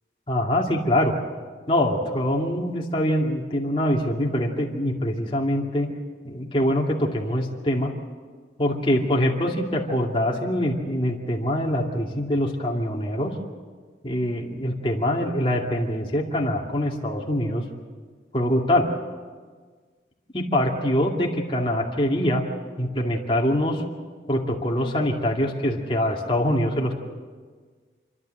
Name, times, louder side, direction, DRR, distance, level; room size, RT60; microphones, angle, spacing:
voice 1, 0.3-1.2 1.7-5.9 6.2-7.9 8.6-13.3 14.0-17.6 18.3-18.9 20.3-22.4 22.8-23.8 24.3-26.9, left 1 dB, 30° left, -1 dB, 2.4 m, -24 dB
29.0 x 12.5 x 7.9 m, 1.5 s
head